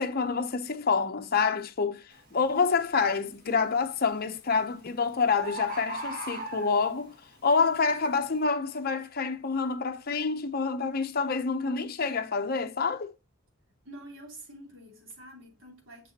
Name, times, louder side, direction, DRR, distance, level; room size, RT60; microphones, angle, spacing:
voice 1, 0.0-2.0 2.3-7.1 7.4-13.1, left 5 dB, 45° left, 0.7 m, -27 dB
Bird, 2.1-2.4 2.9-3.4 4.4-4.5 4.8-4.9 5.0-5.1 5.4-7.1 7.7-7.8, right 1 dB, 40° right, 2.1 m, -37 dB
voice 2, 13.8-16.1, right 1 dB, 60° right, 3.2 m, -47 dB
7.1 x 6.7 x 2.8 m
head